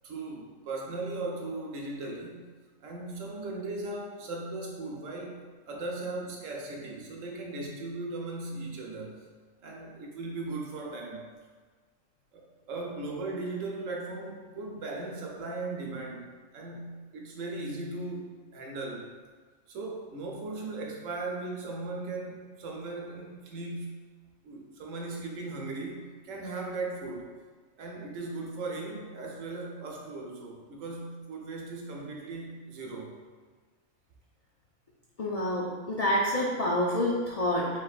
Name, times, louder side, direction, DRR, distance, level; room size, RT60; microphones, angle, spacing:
voice 1, 0.0-2.4 2.8-9.3 9.6-11.3 12.3-19.1 19.7-24.0 24.4-27.3 27.8-33.1, right 2 dB, 85° right, 0 dB, 1.1 m, -38 dB
voice 2, 35.2-37.7, left 1 dB, 80° left, -4 dB, 0.3 m, -27 dB
4.5 x 3.9 x 2.4 m, 1.5 s
omnidirectional pair, 1.3 m